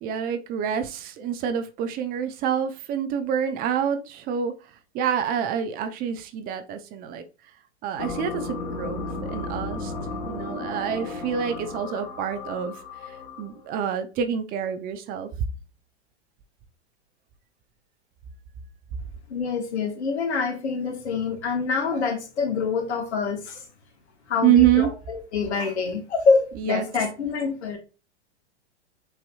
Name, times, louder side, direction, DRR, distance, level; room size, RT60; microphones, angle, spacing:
voice 1, 0.0-4.5 4.9-7.2 7.8-9.9 10.2-12.7 13.1-15.3 24.4-24.9 26.6-26.9, right 9 dB, 25° right, 0.5 m, -26 dB
sound 1, 8.0-13.6, left 3 dB, 30° left, 1.3 m, -34 dB
voice 2, 19.3-23.6 24.3-27.8, left 5 dB, 70° left, 1.4 m, -26 dB
6.3 x 2.9 x 2.3 m
hypercardioid pair, 110°, 34 cm